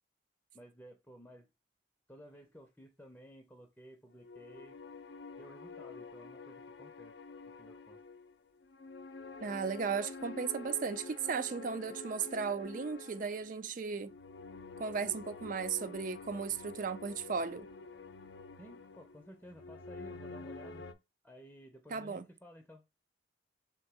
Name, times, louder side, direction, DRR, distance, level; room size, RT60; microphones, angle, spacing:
voice 1, 0.5-1.5 2.1-4.8 5.4-7.1 7.5-8.0 18.6-20.9 21.2-22.8, equal, 10° left, 0.6 m, -55 dB
sound 1, 4.2-20.9, left 3 dB, 70° left, 0.5 m, -48 dB
voice 2, 9.4-14.1 14.8-17.7 21.9-22.2, right 5 dB, 45° right, 0.4 m, -36 dB
3.5 x 2.9 x 4.7 m
head